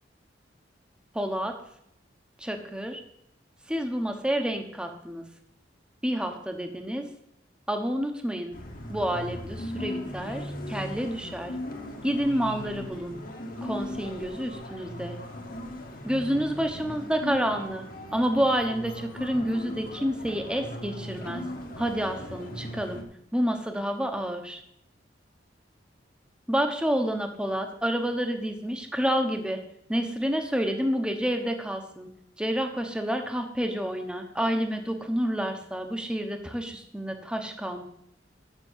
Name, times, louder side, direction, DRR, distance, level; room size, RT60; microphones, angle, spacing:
voice 1, 1.1-1.5 2.4-3.0 3.7-5.2 6.0-7.1 7.7-8.5 8.9-11.5 12.0-13.2 13.6-15.2 16.0-17.8 18.1-21.4 21.8-23.0 23.3-24.6 26.5-29.6 29.9-32.1 32.4-37.8, equal, 5° right, 5 dB, 1.0 m, -29 dB
sound 1, 8.5-23.0, left 1 dB, 50° left, 1.5 m, -38 dB
7.3 x 6.8 x 8.1 m, 0.76 s
head